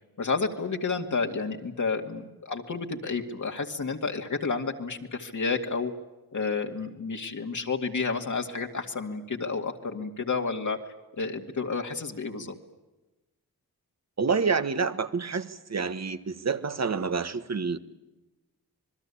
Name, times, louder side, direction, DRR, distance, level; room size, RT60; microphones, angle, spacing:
voice 1, 0.2-5.9 6.3-10.8 11.1-12.5, left 4 dB, 55° left, 3 dB, 2.3 m, -30 dB
voice 2, 14.2-17.8, right 5 dB, 45° right, 12 dB, 1.5 m, -28 dB
27.0 x 20.5 x 8.5 m, 1.1 s
cardioid pair, 80°, 36 cm